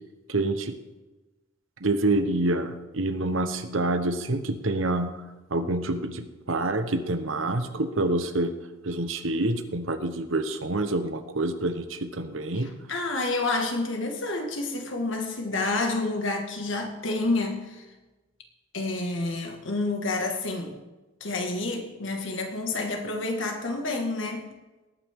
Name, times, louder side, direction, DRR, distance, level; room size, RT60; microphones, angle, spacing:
voice 1, 0.3-0.7 1.8-5.2 5.5-8.5 8.8-12.7, right 2 dB, 90° right, 8 dB, 1.2 m, -27 dB
voice 2, 12.6-17.9 18.7-20.8 21.2-24.5, left 2 dB, 75° left, 3 dB, 2.0 m, -29 dB
19.0 x 9.1 x 3.8 m, 1.1 s
head